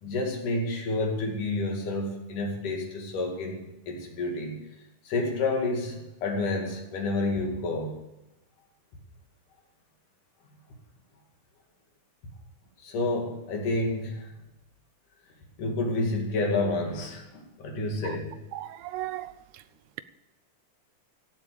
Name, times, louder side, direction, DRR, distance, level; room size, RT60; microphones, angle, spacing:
voice 1, 0.0-4.6 5.1-7.9 12.8-14.3 15.6-18.3, left 2 dB, 85° left, 1 dB, 4.0 m, -29 dB
voice 2, 18.5-19.3, right 15 dB, 80° right, 14 dB, 2.0 m, -35 dB
16.0 x 8.3 x 6.7 m, 0.96 s
omnidirectional pair, 3.6 m